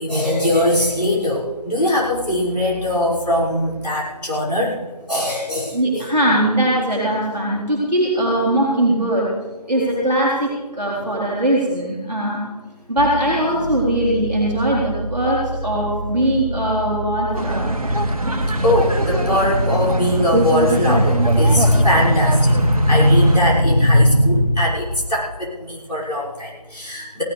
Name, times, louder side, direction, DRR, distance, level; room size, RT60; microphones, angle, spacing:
voice 1, 0.0-4.8 5.1-6.0 17.7-27.2, equal, 80° left, -5 dB, 6.2 m, -19 dB
voice 2, 5.7-9.3 9.7-12.4 12.9-17.7, right 1 dB, ahead, -36 dB, 1.2 m, -20 dB
sound 1, 13.0-19.1, right 1 dB, 45° left, 1.6 m, -29 dB
sound 2, 17.3-23.4, right 1 dB, 60° right, 1.4 m, -23 dB
17.5 x 17.0 x 3.4 m, 1.2 s
figure-of-eight pair, 170°, 21 cm